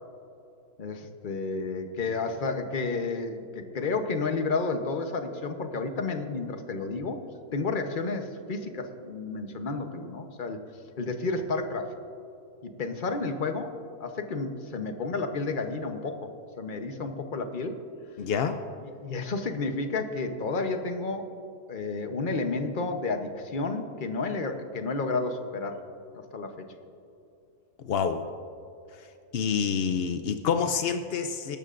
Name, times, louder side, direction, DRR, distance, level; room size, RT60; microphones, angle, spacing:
voice 1, 0.8-7.2 7.5-10.6 11.0-11.9 12.6-13.7 14.0-16.3 16.6-17.8 19.0-21.3 21.7-25.8 26.1-26.7, left 3 dB, 40° left, 6 dB, 0.9 m, -31 dB
voice 2, 18.2-18.6 27.8-28.2 29.0-29.1 29.3-31.6, left 6 dB, 70° left, 8 dB, 0.5 m, -27 dB
24.5 x 12.0 x 2.5 m, 2.7 s
omnidirectional pair, 1.7 m